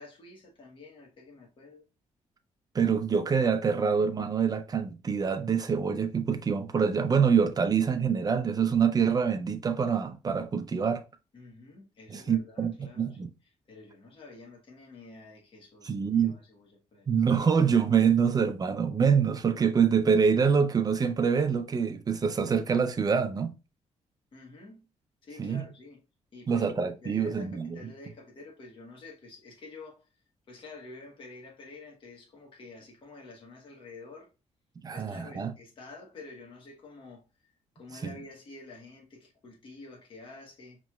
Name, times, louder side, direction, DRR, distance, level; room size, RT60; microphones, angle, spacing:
voice 1, 0.0-1.8 11.3-13.2 13.7-17.1 17.4-17.5 24.3-24.9 25.2-26.0 26.3-26.7 27.0-30.1 30.5-34.3 34.9-37.5 37.7-40.8, left 3 dB, 45° left, 1.1 m, -49 dB
voice 2, 2.7-11.0 12.1-13.3 15.8-16.4 17.1-23.5 25.4-25.7 26.5-27.8 34.8-35.5 38.0-38.2, right 6 dB, 30° right, 0.5 m, -25 dB
5.2 x 3.0 x 2.3 m
cardioid pair, 125°, 13 cm